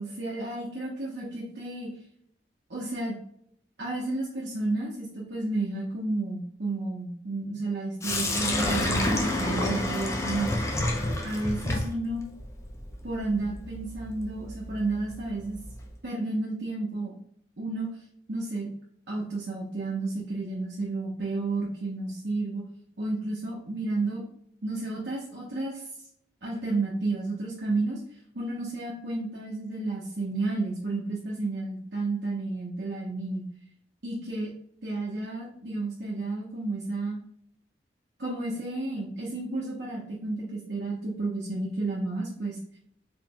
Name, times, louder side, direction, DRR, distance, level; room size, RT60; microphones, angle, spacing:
voice 1, 0.0-1.9 2.7-3.2 3.8-10.5 11.2-12.2 13.0-15.6 16.0-17.1 17.6-17.9 18.3-18.7 19.1-22.6 23.0-24.2 24.6-25.8 26.4-28.0 28.3-33.4 34.0-34.5 34.8-37.2 38.2-42.6, right 2 dB, 65° right, -5 dB, 0.9 m, -31 dB
Sink (filling or washing), 8.0-15.9, left 1 dB, 15° left, 0.6 m, -30 dB
4.4 x 3.6 x 2.2 m, 0.69 s
head